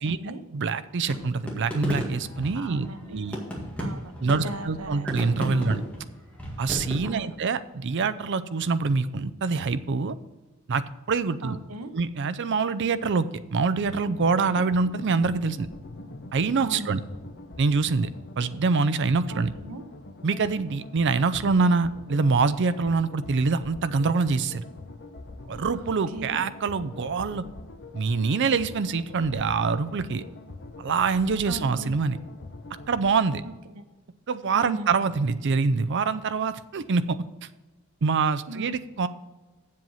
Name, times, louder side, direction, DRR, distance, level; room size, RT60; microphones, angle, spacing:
voice 1, 0.0-0.4 2.5-3.2 3.8-5.1 5.5-5.8 7.0-7.3 11.4-11.9 16.6-16.9 19.3-19.8 25.7-26.4 31.5-31.9 33.4-33.8 34.5-35.0 38.5-38.8, right 2 dB, 80° right, 8 dB, 1.0 m, -38 dB
voice 2, 0.5-3.4 4.2-5.8 6.6-10.2 10.7-11.6 11.9-15.7 16.3-17.0 17.6-18.1 18.4-19.5 20.2-24.6 25.5-27.4 27.9-30.2 30.8-32.2 32.9-33.4 34.3-37.2 38.0-39.1, right 4 dB, 55° right, 13 dB, 0.5 m, -25 dB
sound 1, 1.1-7.2, equal, 5° left, 1.9 m, -33 dB
sound 2, 13.8-33.1, left 2 dB, 50° left, 0.9 m, -44 dB
7.7 x 7.6 x 5.6 m, 1.1 s
head